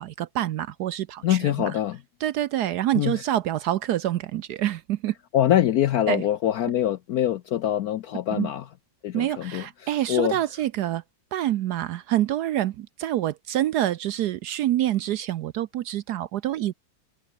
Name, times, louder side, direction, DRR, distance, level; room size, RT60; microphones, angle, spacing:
voice 1, 0.0-1.5 2.2-5.1 6.1-6.2 8.3-8.5 9.1-11.0 11.3-16.7, right 13 dB, 70° right, 1.0 m, -26 dB
voice 2, 1.2-2.0 2.9-3.2 5.3-8.6 9.0-10.4, left 11 dB, 70° left, 0.9 m, -24 dB
omnidirectional pair, 2.1 m